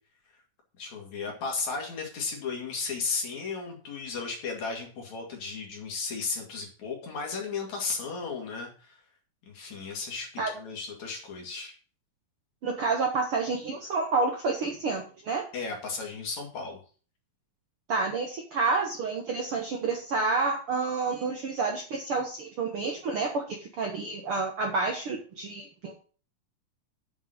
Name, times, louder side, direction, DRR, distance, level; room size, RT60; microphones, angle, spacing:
voice 1, 0.8-9.0 9.5-11.7 15.5-16.8, left 4 dB, 55° left, 1 dB, 3.5 m, -35 dB
voice 2, 12.6-15.4 17.9-26.0, right 4 dB, 60° right, 2 dB, 1.6 m, -29 dB
8.1 x 5.5 x 7.7 m, 0.40 s
omnidirectional pair, 4.0 m